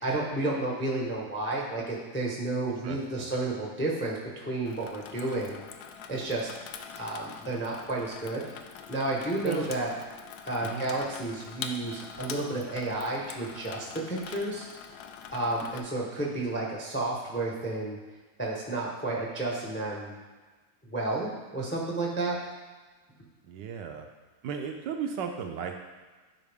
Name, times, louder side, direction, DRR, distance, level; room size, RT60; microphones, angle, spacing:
voice 1, 0.0-5.6 6.1-6.5 6.9-8.5 8.9-9.9 10.5-14.7 15.3-18.0 18.4-20.2 20.8-22.4, right 2 dB, 15° left, -3 dB, 0.4 m, -31 dB
voice 2, 2.8-3.3 9.4-9.7 10.6-10.8 23.5-24.1 24.4-25.8, right 7 dB, 75° right, 4 dB, 1.1 m, -35 dB
Water tap faucet / Sink (filling or washing), 4.7-15.8, left 7 dB, 75° left, 0.9 m, -44 dB
9.9 x 4.2 x 3.5 m, 1.3 s
omnidirectional pair, 2.1 m